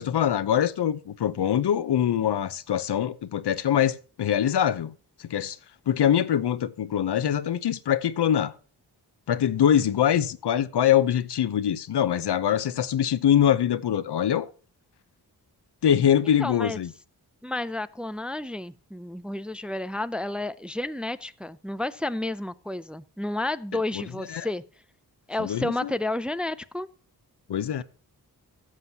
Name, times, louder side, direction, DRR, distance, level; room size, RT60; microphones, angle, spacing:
voice 1, 0.0-4.9 5.2-5.6 5.9-8.5 9.3-14.5 15.8-16.9 24.3-24.5 25.4-25.9 27.5-27.8, left 9 dB, 85° left, 0.9 m, -23 dB
voice 2, 16.4-16.8 17.4-24.6 25.3-26.9, left 2 dB, 5° right, 0.4 m, -31 dB
15.0 x 7.7 x 2.9 m
wide cardioid pair, 110°, 39 cm